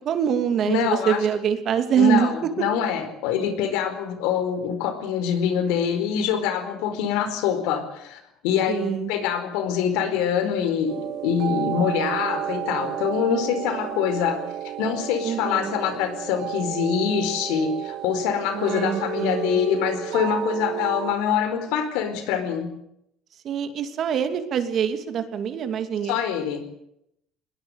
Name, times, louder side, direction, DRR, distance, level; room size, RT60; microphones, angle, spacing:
voice 1, 0.0-2.3 8.7-9.1 15.2-15.8 18.5-19.6 23.4-26.2, right 8 dB, 45° right, 8 dB, 2.7 m, -24 dB
voice 2, 0.6-1.2 2.0-22.7 26.1-26.6, left 8 dB, 85° left, 9 dB, 4.7 m, -25 dB
sound 1, 10.9-21.1, right 12 dB, 65° right, 1.4 m, -32 dB
21.0 x 20.0 x 8.2 m, 0.78 s
cardioid pair, 135°, 0 cm